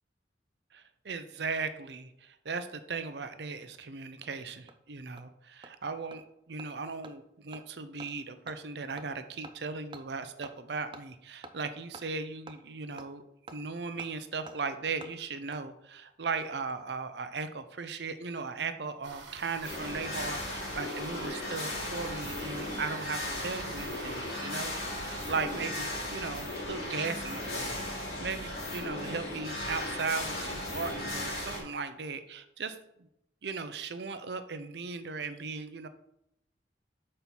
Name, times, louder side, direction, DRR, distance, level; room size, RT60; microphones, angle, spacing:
voice 1, 0.7-13.2 13.5-27.8 28.2-33.1 33.4-35.9, right 4 dB, 65° right, 10 dB, 0.6 m, -37 dB
Hammer, 3.7-3.8 4.2-4.3 4.7-4.8 5.2-5.3 5.6-5.7 6.1-6.2 6.6-6.7 7.0-7.1 7.5-7.6 8.0-8.1 8.5-8.6 9.0-9.1 9.4-9.5 9.9-10.0 10.4-10.5 10.9-11.0 11.4-11.5 11.9-12.1 12.5-12.6 13.0-13.1 13.5-13.6 14.0-14.1 14.5-14.6 15.0-15.1 15.5-15.6 16.5-16.9 17.2-17.3, right 3 dB, 25° right, 0.4 m, -47 dB
sound 1, 19.0-25.7, right 3 dB, 85° right, 1.3 m, -47 dB
sound 2, 19.6-31.6, left 1 dB, 55° left, 2.3 m, -36 dB
5.4 x 4.3 x 6.0 m, 0.81 s
head